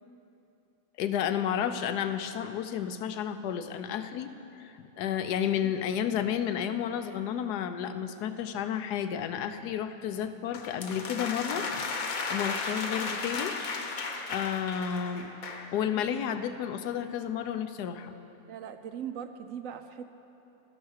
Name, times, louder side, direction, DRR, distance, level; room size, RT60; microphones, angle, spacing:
voice 1, 1.0-11.7 12.3-13.5 14.3-15.3 15.7-18.1, left 9 dB, 85° left, 10 dB, 1.2 m, -31 dB
sound 1, 10.5-15.7, left 4 dB, 65° left, 1.4 m, -34 dB
voice 2, 18.5-20.1, right 8 dB, 70° right, 9 dB, 0.9 m, -39 dB
13.0 x 10.5 x 6.3 m, 2.9 s
omnidirectional pair, 1.7 m